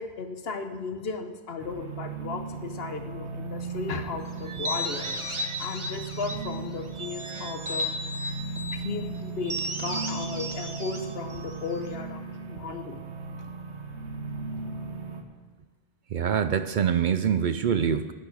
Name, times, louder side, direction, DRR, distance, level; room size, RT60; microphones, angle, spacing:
voice 1, 0.0-7.9 8.7-12.2 12.5-13.0, left 5 dB, 65° left, 7 dB, 1.1 m, -35 dB
sound 1, 1.6-15.2, right 4 dB, 85° right, 1.4 m, -37 dB
sound 2, 4.4-6.5 6.9-8.8 9.4-11.9, equal, 30° right, 0.9 m, -34 dB
voice 2, 16.1-18.1, right 8 dB, 60° right, 11 dB, 0.6 m, -25 dB
10.5 x 9.5 x 6.4 m, 1.4 s
omnidirectional pair, 1.1 m